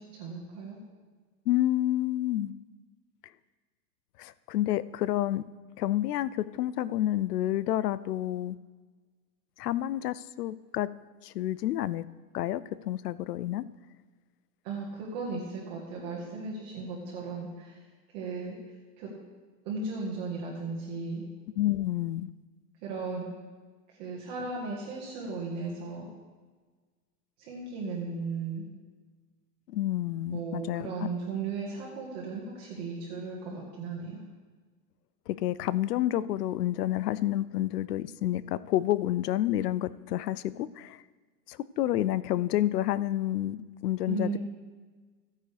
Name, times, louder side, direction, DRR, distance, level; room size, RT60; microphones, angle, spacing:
voice 1, 0.1-0.8 14.6-17.8 18.1-18.5 19.0-19.1 19.6-21.2 22.8-23.3 24.0-26.1 27.4-28.6 30.3-34.2 44.1-44.4, right 4 dB, 25° right, -4 dB, 1.5 m, -36 dB
voice 2, 1.5-2.5 4.2-5.4 5.8-8.6 9.6-10.9 11.2-12.1 12.3-13.7 21.5-22.3 29.7-31.1 35.3-41.0 41.5-43.6 43.8-44.4, left 13 dB, 70° left, 17 dB, 0.6 m, -29 dB
15.0 x 9.4 x 3.4 m, 1.4 s
supercardioid pair, 180°, 49 cm